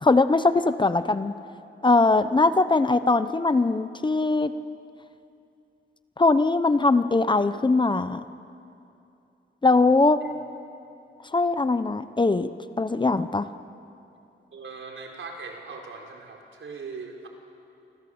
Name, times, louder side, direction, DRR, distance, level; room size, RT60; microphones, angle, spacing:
voice 1, 0.0-1.3 1.8-4.5 6.2-8.2 9.6-10.2 11.3-12.5 12.8-13.5, left 3 dB, 25° left, 11 dB, 0.8 m, -21 dB
voice 2, 14.5-17.3, right 4 dB, 75° right, 2 dB, 4.4 m, -40 dB
29.0 x 25.5 x 8.0 m, 2.7 s
wide cardioid pair, 145°, 20 cm